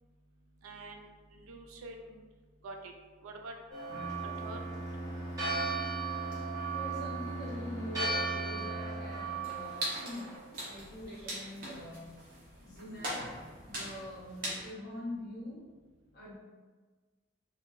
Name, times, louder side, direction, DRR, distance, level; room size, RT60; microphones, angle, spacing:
voice 1, 0.6-2.2 2.6-2.9 3.2-3.5 4.2-4.6, right 2 dB, 80° right, 3 dB, 0.4 m, -46 dB
Church bell, 3.7-10.4, right 4 dB, 15° right, 0.9 m, -37 dB
Bowed string instrument, 3.9-9.8, right 1 dB, ahead, 1.2 m, -41 dB
voice 2, 6.7-10.3 10.6-12.2 12.6-15.7 16.1-16.4, left 1 dB, 50° left, -6 dB, 0.8 m, -44 dB
sound 1, 9.4-14.7, right 1 dB, 45° right, 0.6 m, -41 dB
2.7 x 2.2 x 2.3 m, 1.3 s
head